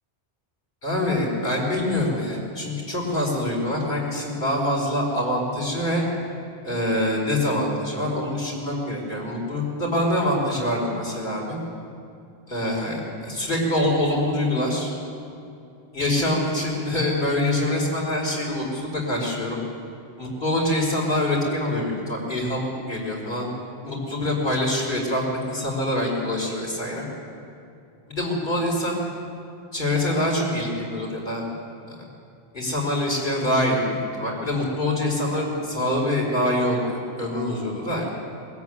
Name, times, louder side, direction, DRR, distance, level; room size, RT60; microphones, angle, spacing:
voice 1, 0.8-6.0 6.6-11.6 12.5-14.9 15.9-19.6 20.2-23.5 23.8-27.1 28.2-29.0 29.7-31.4 31.9-32.0 32.5-38.1, left 1 dB, 50° left, -3 dB, 5.2 m, -25 dB
22.0 x 14.0 x 9.4 m, 2.6 s
omnidirectional pair, 1.1 m